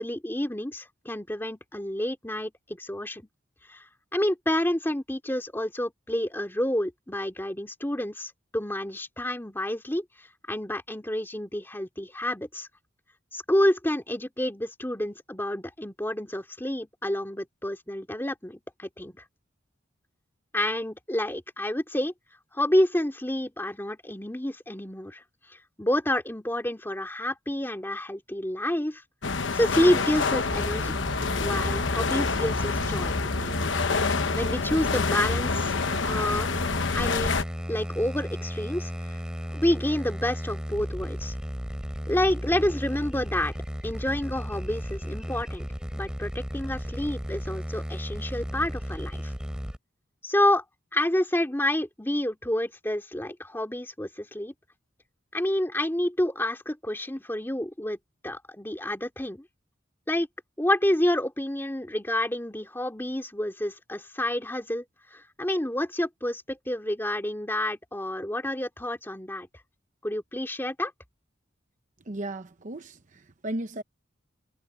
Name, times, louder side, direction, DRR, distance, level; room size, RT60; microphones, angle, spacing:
voice 1, 0.0-3.3 3.7-3.8 4.1-10.0 10.5-12.7 13.3-19.2 20.5-22.1 22.5-25.2 25.5-29.0 29.3-30.9 31.4-33.1 33.4-33.6 34.3-35.7 36.1-36.5 36.9-37.4 37.7-38.9 39.5-41.3 42.1-43.5 43.8-45.7 46.0-49.3 50.2-50.6 50.9-54.5 55.3-58.0 58.2-59.4 60.1-60.3 60.6-64.8 65.1-69.5 70.0-70.9, left 1 dB, 10° left, 2.6 m, -29 dB
sound 1, 29.2-37.4, left 4 dB, 75° left, 1.1 m, -27 dB
sound 2, 30.5-49.8, equal, 5° right, 5.3 m, -34 dB
voice 2, 72.1-73.8, right 1 dB, 40° right, 0.9 m, -35 dB
head